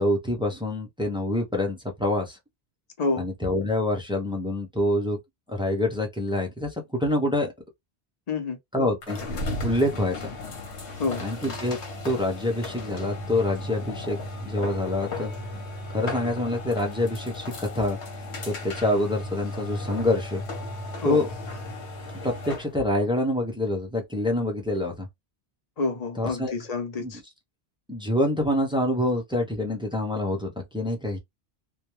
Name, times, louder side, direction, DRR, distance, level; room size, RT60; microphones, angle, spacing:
voice 1, 0.0-2.4 3.2-5.2 5.5-7.5 8.7-9.2 9.6-10.3 11.2-11.8 12.0-15.6 15.9-20.4 21.0-21.3 22.2-25.1 26.2-26.5 27.0-27.1 27.9-31.2, left 1 dB, 5° right, 0.4 m, -26 dB
voice 2, 8.3-8.6 11.0-11.2 21.0-21.2 25.8-27.2, left 3 dB, 45° left, 0.7 m, -27 dB
sound 1, 9.0-22.7, left 1 dB, 85° left, 1.1 m, -35 dB
2.2 x 2.2 x 2.9 m
omnidirectional pair, 1.1 m